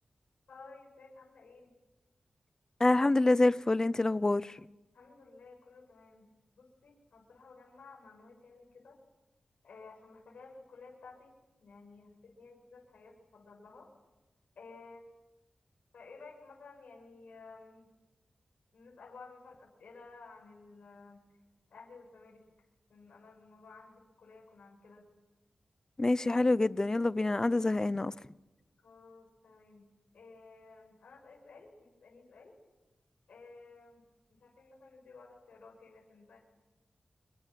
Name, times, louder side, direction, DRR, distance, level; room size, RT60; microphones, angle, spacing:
voice 1, 0.5-1.7 4.9-6.3 6.6-9.0 9.6-13.9 14.6-15.1 15.9-17.9 18.7-21.2 21.7-22.5 22.9-25.1 28.8-32.5 33.3-34.0 34.3-36.4, left 4 dB, 85° left, 7.1 m, -54 dB
voice 2, 2.8-4.5 26.0-28.1, left 2 dB, 25° left, 0.8 m, -26 dB
27.0 x 23.5 x 7.7 m
wide cardioid pair, 90°, 2 cm